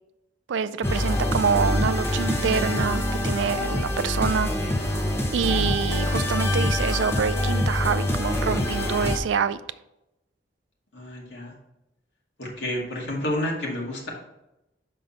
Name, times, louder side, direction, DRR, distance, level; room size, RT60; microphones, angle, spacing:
voice 1, 0.5-4.8 5.3-9.6, right 6 dB, 80° right, 14 dB, 0.4 m, -26 dB
sound 1, 0.8-9.2, left 1 dB, 15° left, 0.7 m, -25 dB
voice 2, 10.9-11.5 12.4-14.1, left 1 dB, 70° left, -3 dB, 2.0 m, -30 dB
6.0 x 5.4 x 3.9 m, 0.90 s
head